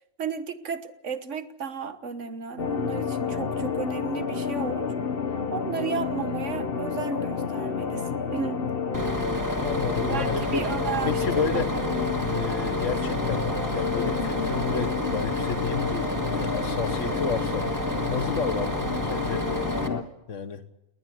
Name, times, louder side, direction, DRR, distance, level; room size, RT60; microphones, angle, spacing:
voice 1, 0.2-4.9 5.5-8.7 10.0-10.3 10.5-11.6 18.5-18.6, right 6 dB, 75° right, 12 dB, 1.6 m, -33 dB
sound 1, 2.6-20.0, left 6 dB, 50° left, 1.4 m, -29 dB
Bus, 8.9-19.9, right 2 dB, 15° right, 1.8 m, -32 dB
voice 2, 9.6-10.6 11.0-11.7 12.3-17.8 18.1-19.5 20.3-20.6, left 6 dB, 85° left, 12 dB, 1.7 m, -31 dB
20.0 x 19.5 x 8.0 m, 0.93 s
omnidirectional pair, 1.3 m